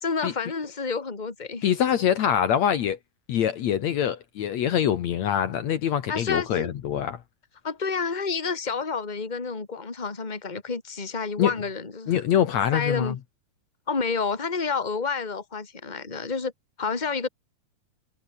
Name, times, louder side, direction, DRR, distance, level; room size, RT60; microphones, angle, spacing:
voice 1, 0.0-1.7 6.1-6.7 7.6-12.2 12.7-13.2 13.9-16.5 16.8-17.3, left 5 dB, 15° left, 2.5 m, -29 dB
voice 2, 1.6-3.0 3.3-7.2 11.4-11.5 12.1-13.2, left 9 dB, 65° left, 2.5 m, -24 dB
omnidirectional pair, 3.6 m